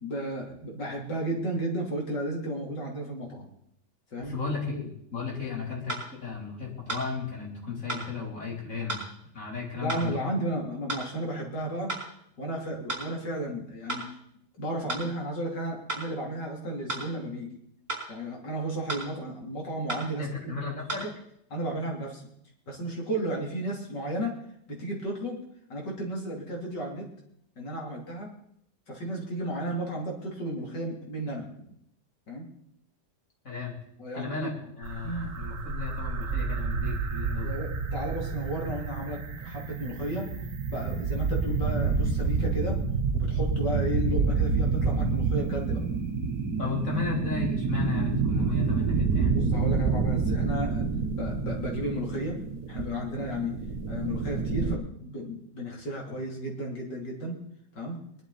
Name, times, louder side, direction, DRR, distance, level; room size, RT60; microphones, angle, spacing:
voice 1, 0.0-3.5 4.1-4.3 9.8-11.9 12.4-14.2 14.6-17.5 18.1-20.6 21.5-22.2 22.7-24.3 24.7-25.4 25.7-27.1 27.6-28.3 28.9-31.5 32.3-32.5 34.0-34.5 35.0-35.3 37.4-40.3 40.7-42.8 43.1-45.8 46.6-46.8 49.3-50.9 51.2-53.5 53.9-57.4 57.8-58.0, right 1 dB, 85° left, -1 dB, 3.7 m, -33 dB
voice 2, 4.2-9.0 9.3-10.2 20.2-21.0 33.4-33.7 34.1-34.5 34.8-37.5 46.6-49.3, left 5 dB, 50° left, -3 dB, 4.1 m, -35 dB
sound 1, 5.9-6.1 6.9-7.1 7.9-8.1 8.9-9.1 9.9-10.1 10.9-11.1 11.9-12.1 12.9-13.1 13.9-14.1 14.9-15.1 15.9-16.1 16.9-17.1 17.9-18.1 18.9-19.1 19.9-20.1 20.9-21.0, right 2 dB, 35° right, 4.8 m, -33 dB
sound 2, 34.8-54.8, right 4 dB, 65° right, 1.7 m, -28 dB
21.0 x 11.5 x 4.1 m, 0.72 s
omnidirectional pair, 1.8 m